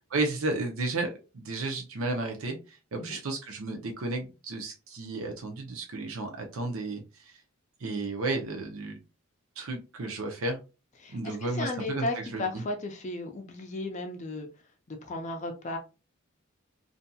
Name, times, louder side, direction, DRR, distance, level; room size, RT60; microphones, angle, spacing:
voice 1, 0.1-7.4 7.8-9.0 9.6-10.6 11.1-12.4, right 2 dB, 80° right, 3 dB, 0.6 m, -33 dB
voice 2, 11.0-14.5 14.9-15.8, left 2 dB, 35° left, 5 dB, 0.4 m, -35 dB
2.7 x 2.5 x 2.2 m, 0.30 s
head